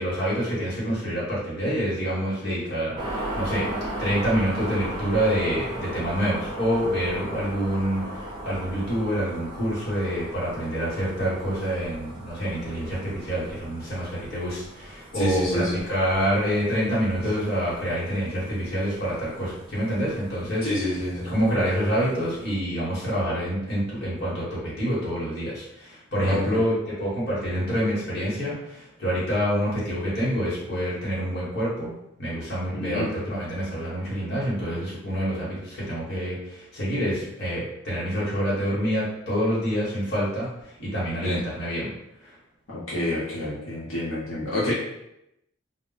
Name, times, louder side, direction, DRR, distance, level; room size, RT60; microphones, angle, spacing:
voice 1, 0.0-3.7 4.0-20.7 21.2-31.9 32.2-41.9 42.2-42.3, equal, 55° left, -7 dB, 1.2 m, -27 dB
sound 1, 3.0-22.5, right 1 dB, 25° right, 0.5 m, -37 dB
voice 2, 15.1-15.8 20.6-21.3 26.2-26.6 32.7-33.1 41.2-41.4 42.7-44.7, left 1 dB, 85° left, -8 dB, 0.8 m, -28 dB
2.1 x 2.1 x 3.8 m, 0.83 s
head